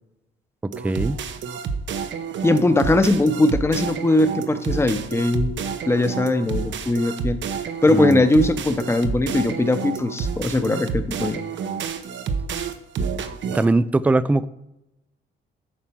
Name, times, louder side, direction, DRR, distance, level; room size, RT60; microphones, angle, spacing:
voice 1, 0.6-1.2 7.9-8.2 13.5-14.5, right 2 dB, 5° right, 16 dB, 0.3 m, -21 dB
sound 1, 0.7-13.6, right 6 dB, 70° right, 0.9 m, -29 dB
voice 2, 2.4-5.6 5.9-7.4 7.8-11.4, left 2 dB, 15° left, 9 dB, 0.8 m, -20 dB
8.9 x 4.3 x 6.1 m, 0.91 s
cardioid pair, 90°, 20 cm